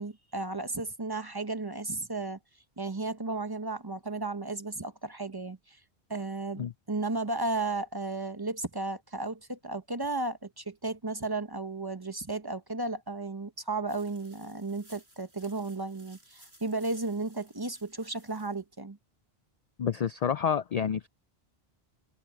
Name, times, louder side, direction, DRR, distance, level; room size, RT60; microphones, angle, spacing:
voice 1, 0.0-2.4 2.8-5.8 6.1-19.0, right 3 dB, 25° right, 0.9 m, -34 dB
sound 1, 13.9-18.6, right 1 dB, 80° right, 8.5 m, -58 dB
voice 2, 19.8-21.1, left 7 dB, 55° left, 0.4 m, -28 dB
omnidirectional pair, 1.1 m